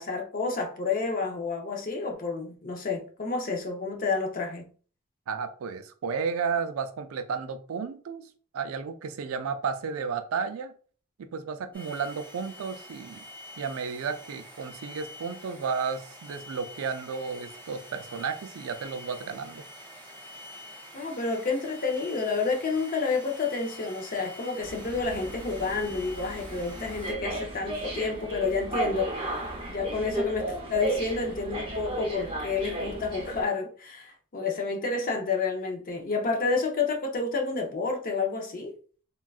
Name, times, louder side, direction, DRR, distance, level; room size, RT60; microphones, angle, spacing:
voice 1, 0.0-4.7 20.9-29.1 29.7-38.8, left 4 dB, 40° left, 0.6 m, -29 dB
voice 2, 5.3-8.3 8.5-10.7 11.2-13.2 13.6-19.6, right 5 dB, 70° right, 0.4 m, -33 dB
sound 1, 11.7-27.1, left 1 dB, 5° left, 1.2 m, -46 dB
sound 2, 24.6-33.4, right 2 dB, 25° right, 0.7 m, -34 dB
3.6 x 2.3 x 2.3 m
head